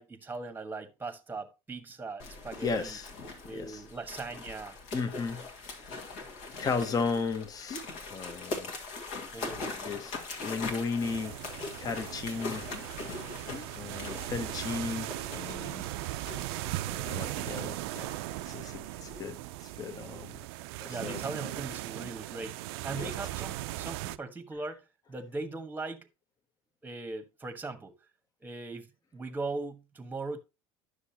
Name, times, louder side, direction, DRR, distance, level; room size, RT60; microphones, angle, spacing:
voice 1, 0.0-3.0 3.4-4.8 5.9-6.0 9.3-10.2 20.8-26.1 26.8-27.9 28.4-30.4, right 3 dB, 15° right, 1.2 m, -40 dB
sound 1, 2.2-19.2, left 3 dB, 60° left, 1.8 m, -42 dB
voice 2, 2.6-3.1 3.5-3.8 4.9-6.1 6.6-8.7 9.8-11.4 11.8-12.7 13.8-15.9 16.8-18.1 18.5-20.4 20.8-21.5 23.0-23.1, left 4 dB, 30° left, 0.9 m, -35 dB
sound 2, 11.0-24.2, right 17 dB, 75° right, 0.4 m, -38 dB
9.6 x 6.4 x 2.8 m
supercardioid pair, 95°, 13 cm